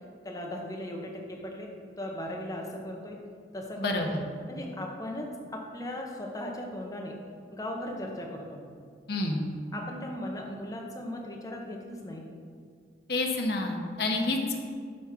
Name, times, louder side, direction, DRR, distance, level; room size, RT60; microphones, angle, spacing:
voice 1, 0.2-1.7 2.0-3.2 3.5-4.1 4.5-7.2 7.5-8.6 9.7-12.3, left 1 dB, 20° left, 0 dB, 0.7 m, -37 dB
voice 2, 3.8-4.2 9.1-9.5 13.1-14.6, left 2 dB, 65° left, 2 dB, 0.8 m, -28 dB
6.2 x 3.5 x 5.8 m, 2.1 s
head